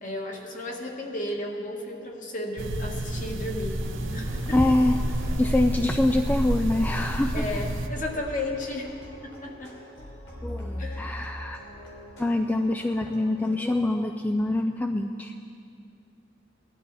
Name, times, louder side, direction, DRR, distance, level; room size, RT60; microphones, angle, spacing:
voice 1, 0.0-3.8 4.1-4.6 5.3-5.4 7.3-9.8 10.8-11.2, left 1 dB, 45° left, 0 dB, 1.6 m, -34 dB
sound 1, 2.6-7.9, right 1 dB, 75° right, 0.9 m, -29 dB
sound 2, 3.8-13.7, left 1 dB, 90° left, 3.3 m, -42 dB
voice 2, 4.5-5.0 5.4-7.4 10.4-11.6 12.2-15.3, left 1 dB, 10° left, 5 dB, 0.3 m, -25 dB
19.0 x 12.5 x 4.1 m, 2.5 s
head